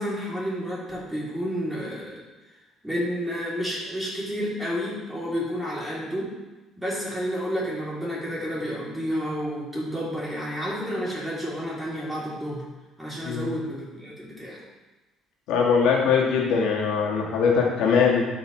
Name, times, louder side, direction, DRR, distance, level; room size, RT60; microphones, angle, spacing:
voice 1, 0.0-2.2 2.8-6.3 6.8-12.6 13.0-14.6, equal, 10° right, -6 dB, 3.0 m, -30 dB
voice 2, 13.2-13.5 15.5-18.2, left 6 dB, 85° left, -2 dB, 1.7 m, -21 dB
12.5 x 5.4 x 3.2 m, 1.1 s
cardioid pair, 130°, 0 cm